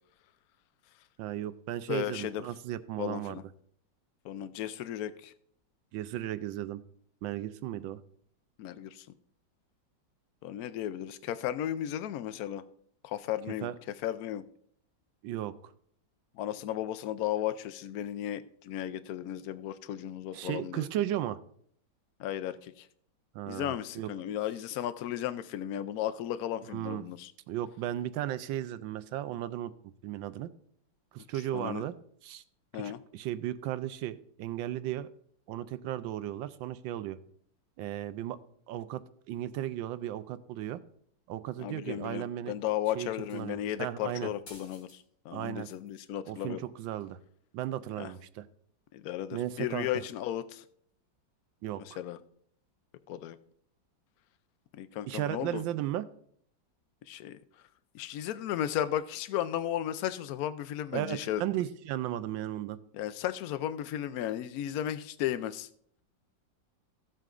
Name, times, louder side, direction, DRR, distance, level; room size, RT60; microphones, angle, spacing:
voice 1, 1.2-3.4 5.9-6.8 7.2-8.0 13.6-13.7 15.2-15.7 20.3-21.4 23.3-24.1 26.7-27.0 27.5-30.5 31.1-31.9 32.2-32.4 32.8-35.1 35.5-37.2 37.8-38.4 38.7-40.8 41.3-42.5 42.9-44.3 45.3-45.7 46.3-47.2 47.5-48.5 49.3-49.9 51.6-51.8 55.1-56.1 60.9-62.8, right 12 dB, 85° right, 13 dB, 1.3 m, -35 dB
voice 2, 1.9-2.4 3.0-3.4 4.2-5.3 8.6-9.1 10.4-12.6 13.0-13.7 14.0-14.4 16.3-20.9 22.2-22.9 23.5-27.3 31.5-31.8 32.7-33.0 41.6-46.6 48.0-48.1 48.9-50.6 51.8-52.2 53.1-53.4 54.7-55.6 57.1-57.4 57.9-61.4 62.9-65.7, left 11 dB, 70° left, 14 dB, 0.8 m, -35 dB
sound 1, 43.2-43.6 44.5-45.0 45.3-46.0 47.0-47.1, left 2 dB, 90° left, 4.0 m, -54 dB
16.0 x 7.7 x 2.5 m, 0.64 s
omnidirectional pair, 2.0 m